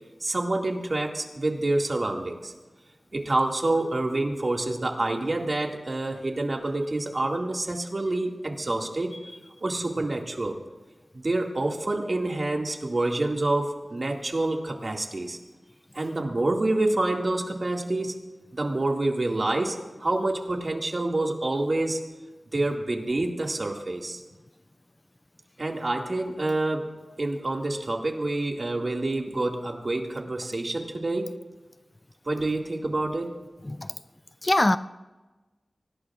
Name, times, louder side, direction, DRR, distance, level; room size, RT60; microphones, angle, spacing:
voice 1, 0.2-2.5 3.1-9.2 9.6-10.6 11.1-15.4 15.9-18.2 18.5-22.0 22.5-24.2 25.6-31.4 32.2-33.4, right 2 dB, 45° right, 1 dB, 2.1 m, -27 dB
voice 2, 33.6-33.9 34.4-34.8, left 1 dB, 25° left, 13 dB, 0.4 m, -22 dB
24.5 x 18.0 x 2.5 m, 1.2 s
wide cardioid pair, 80°, 0 cm